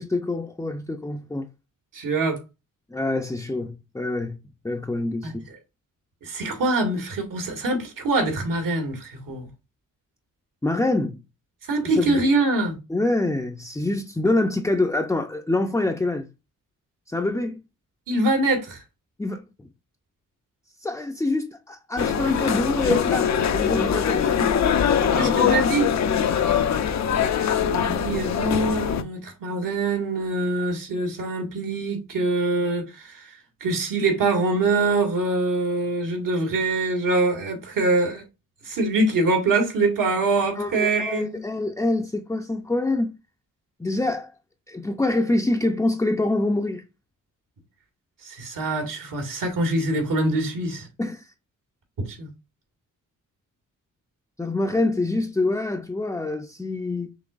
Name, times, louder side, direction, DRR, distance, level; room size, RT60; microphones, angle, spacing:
voice 1, 0.0-1.5 2.9-5.4 10.6-11.2 11.8-12.2 12.9-16.3 17.1-17.6 19.2-19.7 20.8-24.6 25.0-25.5 40.6-43.1 43.8-44.3 44.7-46.8 51.0-51.3 54.4-57.1, left 2 dB, 10° left, 0.5 m, -26 dB
voice 2, 1.9-2.4 5.2-5.3 6.2-9.5 11.7-12.8 18.1-18.8 25.1-25.9 27.7-33.3 33.6-38.2 38.6-41.4 48.2-50.9 52.0-52.3, right 2 dB, 70° right, 1.8 m, -24 dB
sound 1, 22.0-29.0, left 8 dB, 55° left, 0.6 m, -22 dB
5.9 x 3.2 x 2.4 m
cardioid pair, 65°, 34 cm